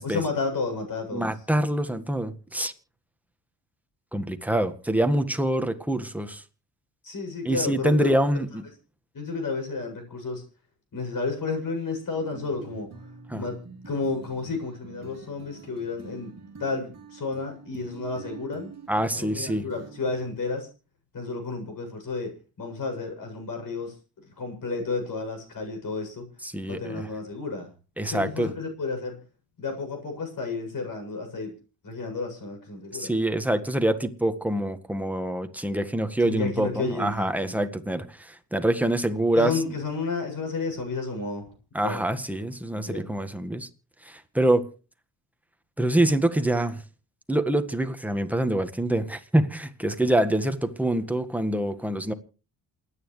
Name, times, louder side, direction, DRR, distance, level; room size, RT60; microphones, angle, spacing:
voice 1, 0.0-1.3 7.0-8.1 9.1-10.4 10.9-13.1 13.3-13.6 13.9-16.3 16.6-18.7 19.1-20.7 21.1-24.0 24.4-26.2 26.7-27.7 28.0-29.2 29.6-31.5 31.8-33.1 36.2-37.6 39.3-41.4 41.8-42.0 42.7-43.1, left 4 dB, 50° left, 7.8 m, -31 dB
voice 2, 1.1-2.7 4.1-6.4 7.4-8.6 13.3-13.4 18.9-19.6 26.4-27.1 28.0-28.5 32.9-39.6 41.7-43.7 44.0-44.7 45.8-46.8 47.3-52.1, right 1 dB, 5° right, 1.6 m, -25 dB
sound 1, 12.1-20.3, right 4 dB, 35° right, 2.7 m, -45 dB
28.0 x 9.9 x 3.3 m
supercardioid pair, 75°, 43 cm